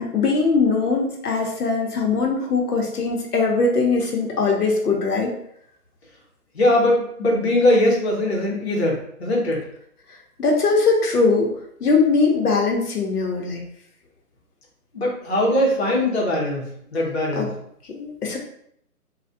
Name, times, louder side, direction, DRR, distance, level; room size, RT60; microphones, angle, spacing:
voice 1, 0.0-5.3 10.1-11.5 11.8-13.6 17.3-17.5 17.9-18.4, left 4 dB, 75° left, 0 dB, 0.9 m, -21 dB
voice 2, 6.5-9.6 14.9-17.5, left 1 dB, 45° left, -4 dB, 0.8 m, -21 dB
3.3 x 2.3 x 2.6 m, 0.69 s
hypercardioid pair, 175°, 46 cm